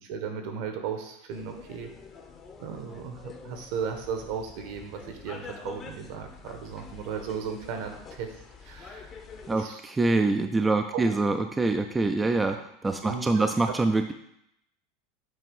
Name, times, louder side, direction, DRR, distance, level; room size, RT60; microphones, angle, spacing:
voice 1, 0.0-1.9 2.6-9.1 9.5-9.8 10.9-11.1 11.3-11.4 13.0-13.4, right 7 dB, 65° right, 5 dB, 1.2 m, -36 dB
sound 1, 1.3-9.6, left 5 dB, 25° left, 0.8 m, -46 dB
voice 2, 9.5-14.1, right 3 dB, 10° right, 6 dB, 0.4 m, -25 dB
7.6 x 2.9 x 5.4 m, 0.76 s
supercardioid pair, 130°, 0 cm